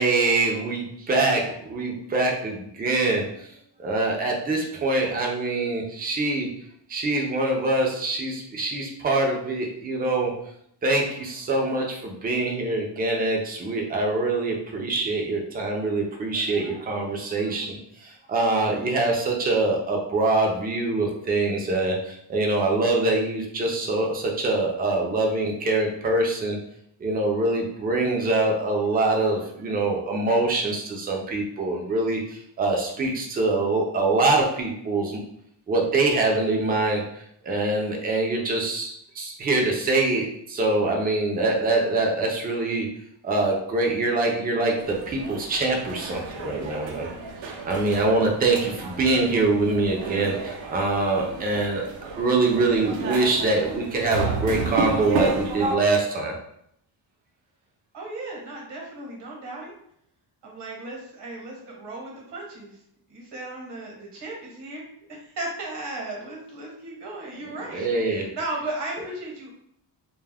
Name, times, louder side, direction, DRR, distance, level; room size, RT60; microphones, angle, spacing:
voice 1, 0.0-3.5 3.8-6.5 6.9-10.3 10.8-26.6 27.0-35.2 35.7-37.0 37.4-42.9 43.2-47.1 47.6-51.8 52.2-56.3 67.7-68.3, right 2 dB, 20° right, 0 dB, 0.3 m, -24 dB
sound 1, 44.8-55.8, right 4 dB, 85° right, 0.6 m, -32 dB
voice 2, 57.9-59.7 60.4-62.8 63.1-69.5, right 2 dB, 65° right, -1 dB, 1.0 m, -36 dB
2.2 x 2.0 x 3.3 m, 0.72 s
wide cardioid pair, 160°, 44 cm